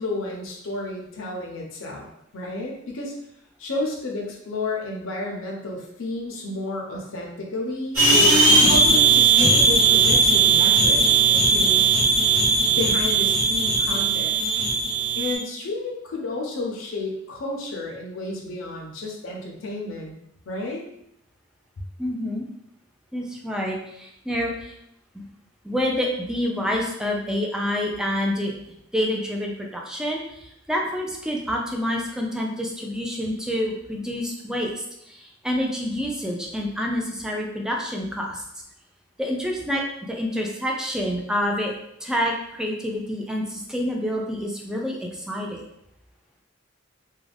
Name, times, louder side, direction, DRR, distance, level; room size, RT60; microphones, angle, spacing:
voice 1, 0.0-3.1 3.6-11.9 12.7-14.3 15.2-20.2 20.5-20.8 21.8-21.9, left 2 dB, 80° left, -1 dB, 0.5 m, -31 dB
sound 1, 7.9-15.3, right 4 dB, 85° right, 1.0 m, -18 dB
voice 2, 22.0-22.5 23.1-24.7 25.1-25.2 25.6-28.5 28.9-38.4 39.2-41.7 42.0-45.6, equal, 5° right, -1 dB, 0.4 m, -27 dB
2.4 x 2.2 x 3.2 m, 0.79 s
head